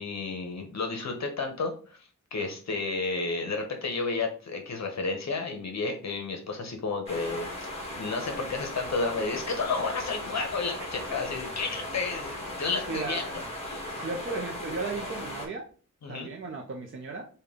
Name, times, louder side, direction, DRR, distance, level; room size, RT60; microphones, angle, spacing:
voice 1, 0.0-2.0 2.3-7.5 8.0-13.2 13.7-13.9 16.0-16.3, left 4 dB, 60° left, 4 dB, 0.8 m, -31 dB
sound 1, 7.1-15.5, left 1 dB, 20° left, 1.5 m, -37 dB
voice 2, 12.9-13.2 14.0-15.7 16.1-17.2, right 3 dB, 40° right, 0 dB, 0.6 m, -35 dB
5.2 x 2.3 x 3.5 m, 0.39 s
wide cardioid pair, 165°, 31 cm